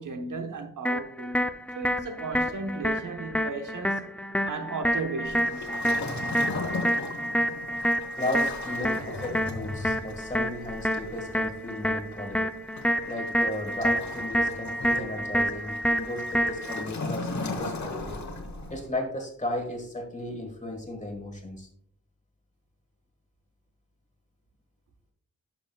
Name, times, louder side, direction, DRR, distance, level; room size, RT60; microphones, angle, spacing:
voice 1, 0.0-4.1 4.5-5.8, right 3 dB, 65° right, 1.1 m, -35 dB
sound 1, 0.8-16.8, equal, 5° left, 0.4 m, -28 dB
Waves surf, 5.2-18.9, left 2 dB, 55° left, 1.1 m, -37 dB
voice 2, 8.2-12.4 13.1-18.2 18.7-21.7, left 1 dB, 20° left, 1.5 m, -35 dB
11.0 x 6.0 x 2.3 m
wide cardioid pair, 105°, 34 cm